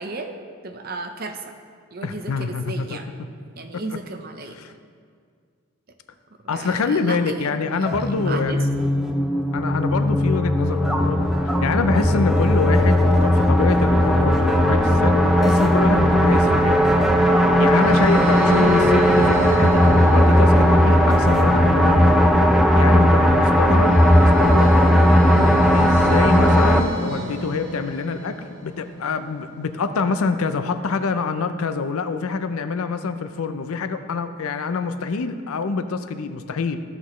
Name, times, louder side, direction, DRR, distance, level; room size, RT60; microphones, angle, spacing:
voice 1, 0.0-1.5 1.9-3.1 3.6-4.6 6.4-8.6 27.1-27.5, right 3 dB, 45° right, 6 dB, 0.6 m, -34 dB
voice 2, 2.0-3.0 3.7-4.0 4.5-4.7 6.5-8.7 9.5-11.3 11.6-16.8 17.6-22.3 22.8-24.7 25.7-28.4 28.6-36.8, left 4 dB, 75° left, 9 dB, 0.5 m, -26 dB
sound 1, 7.8-26.8, equal, ahead, 0.4 m, -17 dB
sound 2, 17.7-29.1, equal, 80° right, 1.4 m, -31 dB
14.0 x 6.0 x 3.1 m, 2.1 s
head